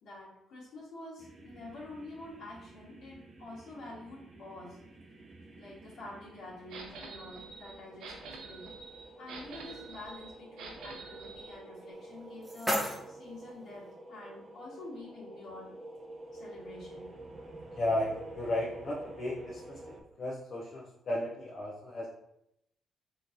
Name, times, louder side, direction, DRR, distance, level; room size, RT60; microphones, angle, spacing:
voice 1, 0.0-4.8 5.6-8.7 9.2-15.7 16.3-17.1, left 2 dB, 75° left, -7 dB, 1.5 m, -47 dB
sound 1, 1.2-20.0, right 2 dB, 35° right, 0.6 m, -50 dB
sound 2, 6.7-11.5, right 4 dB, 85° right, 0.6 m, -47 dB
sound 3, 11.9-13.9, equal, ahead, 0.9 m, -36 dB
voice 2, 17.7-22.1, left 1 dB, 50° left, -4 dB, 0.6 m, -35 dB
3.9 x 3.1 x 2.6 m, 0.79 s
cardioid pair, 90°, 0 cm